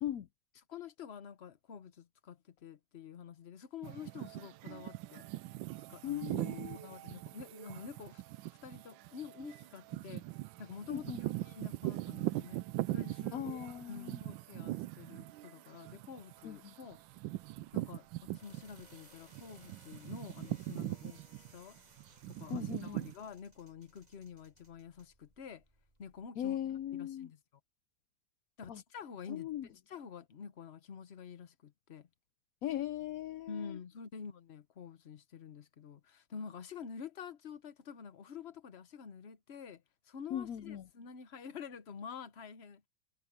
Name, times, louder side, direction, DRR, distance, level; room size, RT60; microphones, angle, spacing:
voice 1, 0.7-5.3 5.9-8.2 8.6-10.2 10.6-13.5 13.9-17.0 17.7-21.2 21.5-21.8 22.3-25.6 26.0-26.6 26.9-27.4 28.6-32.1 33.5-39.8 40.1-42.8, left 6 dB, 45° left, 1.0 m, -48 dB
sound 1, 3.8-19.0 19.3-23.1, right 16 dB, 80° right, 1.3 m, -41 dB
voice 2, 6.0-6.8 10.9-11.2 13.3-14.2 16.4-16.7 22.5-23.1 26.4-27.3 28.7-28.8 29.3-29.7 32.6-33.8 40.3-40.9, left 11 dB, 70° left, 0.8 m, -39 dB
sound 2, 16.2-26.3, right 1 dB, 20° right, 3.2 m, -64 dB
omnidirectional pair, 2.2 m